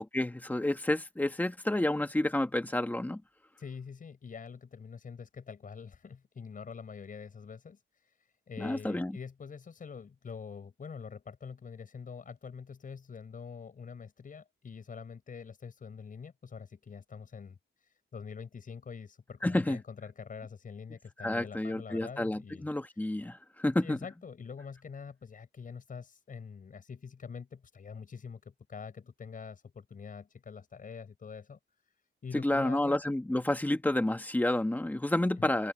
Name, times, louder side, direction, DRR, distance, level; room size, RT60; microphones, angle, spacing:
voice 1, 0.0-3.2 8.6-9.1 19.4-19.8 21.2-24.0 32.3-35.7, left 1 dB, 10° left, 1.7 m, -30 dB
voice 2, 3.6-8.1 8.5-22.7 23.8-31.9 32.2-33.0 35.4-35.5, left 6 dB, 40° left, 5.9 m, -45 dB
open air
wide cardioid pair, 165°, 21 cm